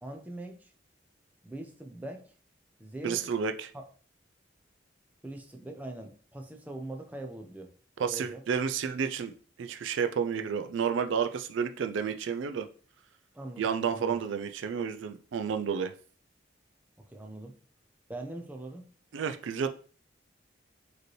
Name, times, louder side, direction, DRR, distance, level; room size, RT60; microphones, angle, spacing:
voice 1, 0.0-0.7 1.4-2.2 2.8-3.2 3.7-3.8 5.2-7.7 8.1-8.4 13.3-14.2 17.1-17.5 18.1-18.8, right 1 dB, 10° right, 2 dB, 0.5 m, -42 dB
voice 2, 3.0-3.7 8.0-9.3 9.6-12.7 13.6-15.9 19.1-19.7, right 6 dB, 80° right, 8 dB, 0.4 m, -31 dB
4.9 x 3.1 x 3.1 m, 0.41 s
head